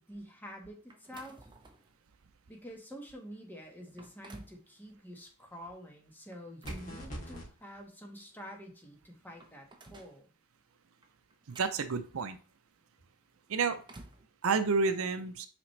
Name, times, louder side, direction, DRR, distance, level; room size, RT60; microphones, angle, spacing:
voice 1, 0.0-1.5 2.5-10.3, equal, 10° left, 1 dB, 1.3 m, -48 dB
sound 1, 0.9-1.9 2.5-2.7 3.3-3.4 3.8-4.6 6.3-7.6 8.7-8.8 9.1-10.2 11.0-12.5 13.4-14.3, right 2 dB, 20° right, 0.7 m, -53 dB
sound 2, 6.6-7.5, equal, 40° left, 2.8 m, -41 dB
voice 2, 11.6-12.4 13.5-13.8 14.4-15.5, right 4 dB, 65° right, 10 dB, 0.6 m, -29 dB
6.0 x 5.0 x 3.2 m, 0.38 s
head